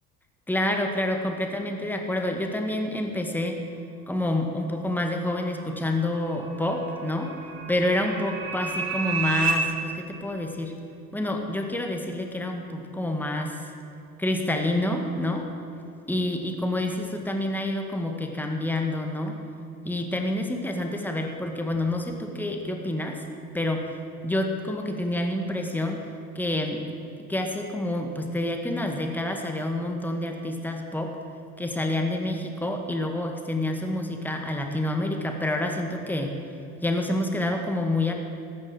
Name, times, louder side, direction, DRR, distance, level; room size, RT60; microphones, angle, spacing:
voice 1, 0.5-3.6 4.1-7.3 7.7-10.7 11.1-13.6 14.2-15.5 16.1-19.4 19.9-23.3 23.5-23.9 24.2-26.0 26.4-26.8 27.3-31.2 31.6-36.4 36.8-38.1, left 1 dB, 5° left, 3 dB, 2.0 m, -28 dB
sound 1, 5.2-9.5, right 5 dB, 55° right, 2.7 m, -32 dB
14.5 x 10.5 x 7.9 m, 2.7 s
hypercardioid pair, 75°, 46 cm